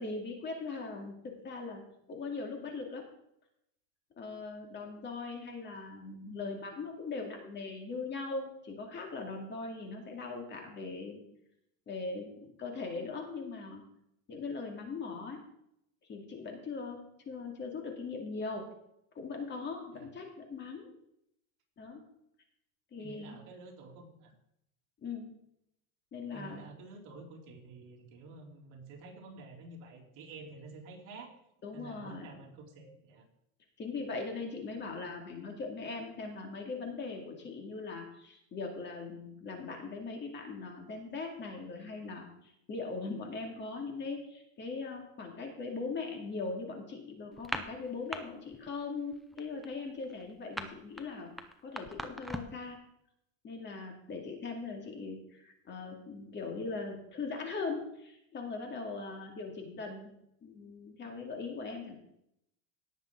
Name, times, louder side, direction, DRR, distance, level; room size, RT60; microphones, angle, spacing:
voice 1, 0.0-1.8 2.1-3.0 4.2-11.2 11.9-13.8 14.3-15.4 16.1-18.7 19.1-20.9 21.8-22.0 22.9-23.4 25.0-25.3 26.1-26.6 31.6-32.3 33.8-51.3 51.6-52.8 53.4-60.1 60.4-62.0, left 4 dB, 30° left, 2 dB, 2.3 m, -40 dB
voice 2, 23.0-24.3 26.3-31.3 31.7-33.2, right 3 dB, 50° right, 0 dB, 3.1 m, -50 dB
sound 1, 47.3-48.2 48.5-48.8 49.1-52.6, equal, ahead, 0.6 m, -40 dB
18.0 x 7.2 x 3.8 m, 0.76 s
supercardioid pair, 145°, 39 cm